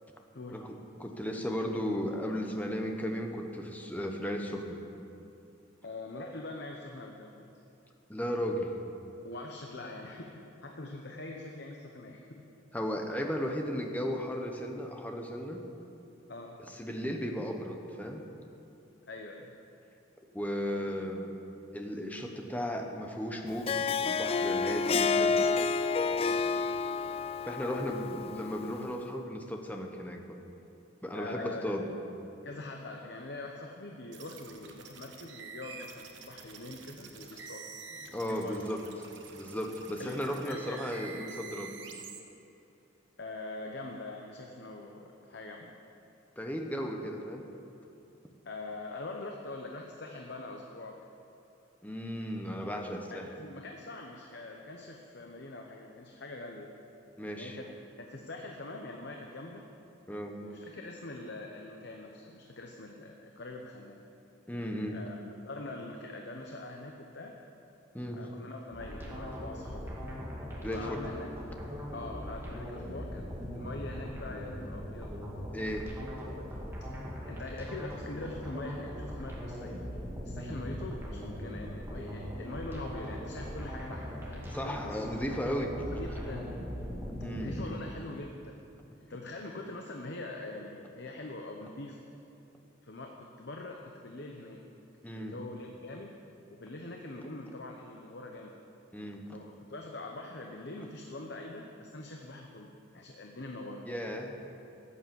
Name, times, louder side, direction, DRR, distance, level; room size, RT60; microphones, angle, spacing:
voice 1, 0.5-4.8 8.1-8.7 12.7-15.6 16.6-18.2 20.3-21.3 21.7-25.6 27.4-30.2 31.0-31.9 38.1-38.8 39.3-41.7 46.4-47.4 51.8-53.3 57.2-57.6 60.1-60.3 64.5-65.0 67.9-68.3 70.6-71.0 75.5-75.9 84.5-85.8 87.2-87.7 95.0-95.3 98.9-99.2 103.9-104.3, equal, 10° left, 2 dB, 1.0 m, -35 dB
voice 2, 5.8-7.5 9.2-12.5 16.3-16.6 19.1-19.5 26.0-26.5 31.1-31.7 32.4-38.8 40.0-40.1 40.4-41.5 43.2-45.7 48.4-51.1 53.1-56.7 57.3-57.7 58.0-59.7 60.4-64.0 64.9-65.2 65.4-67.3 68.1-70.2 70.6-71.3 71.9-73.3 73.5-75.1 76.9-79.8 80.2-85.2 85.8-86.5 87.3-88.6 89.1-92.0 92.8-94.6 95.1-96.2 96.5-98.6 99.3-103.9, left 2 dB, 60° left, 1 dB, 0.9 m, -43 dB
Harp, 23.5-28.9, left 4 dB, 30° left, 0.3 m, -30 dB
sound 1, 34.1-42.2, right 5 dB, 65° right, 1.2 m, -48 dB
sound 2, 68.7-87.6, equal, 10° right, 2.1 m, -40 dB
14.0 x 8.6 x 7.0 m, 2.9 s
head